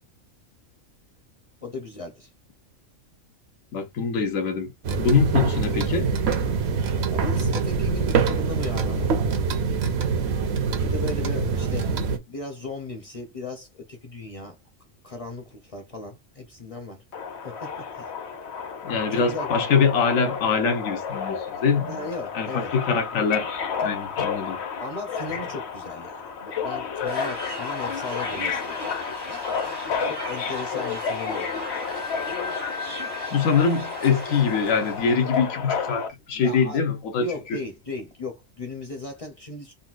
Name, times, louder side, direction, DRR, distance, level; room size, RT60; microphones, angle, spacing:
voice 1, 1.6-2.3 5.4-5.5 7.1-9.1 10.7-14.6 15.0-17.0 17.4-18.1 19.1-19.5 21.9-22.7 23.1-23.2 24.8-29.1 30.0-31.5 35.9-36.0 36.3-36.8 37.2-39.7, left 2 dB, 40° left, 0.5 m, -36 dB
voice 2, 3.7-6.1 18.8-22.0 22.3-23.5 23.8-24.6 33.3-37.6, left 5 dB, 85° left, 1.1 m, -24 dB
sound 1, 4.8-12.2, right 5 dB, 65° right, 0.8 m, -24 dB
Subway metro underground, 17.1-36.1, left 6 dB, 60° left, 0.9 m, -31 dB
sound 2, 27.0-35.5, equal, 30° right, 0.4 m, -37 dB
3.9 x 2.2 x 2.4 m
omnidirectional pair, 1.3 m